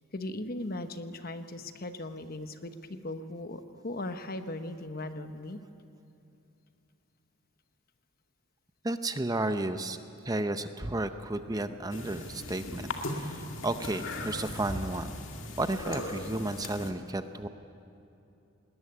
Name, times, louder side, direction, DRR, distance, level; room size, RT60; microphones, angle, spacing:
voice 1, 0.1-5.6, left 1 dB, 45° left, 9 dB, 1.0 m, -38 dB
voice 2, 8.8-10.0 10.2-12.9 13.2-15.1 15.6-17.5, right 2 dB, 20° right, 9 dB, 0.7 m, -32 dB
sound 1, 11.9-16.9, left 2 dB, 65° left, 2.2 m, -38 dB
20.0 x 19.0 x 9.6 m, 2.8 s
head